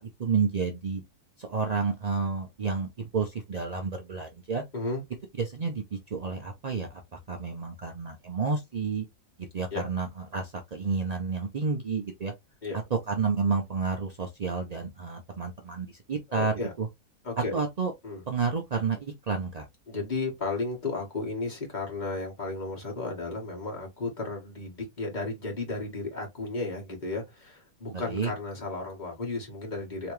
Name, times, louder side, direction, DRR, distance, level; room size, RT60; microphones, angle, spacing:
voice 1, 0.2-1.0 1.4-4.6 5.4-7.0 7.3-9.1 9.5-12.3 13.1-16.9 17.5-17.9 18.3-19.7 27.9-28.3, right 4 dB, 75° right, 0.3 m, -30 dB
voice 2, 16.3-16.7 17.2-17.5 18.0-18.2 19.9-30.1, left 3 dB, 30° left, 1.7 m, -34 dB
3.4 x 2.9 x 3.0 m
omnidirectional pair, 1.6 m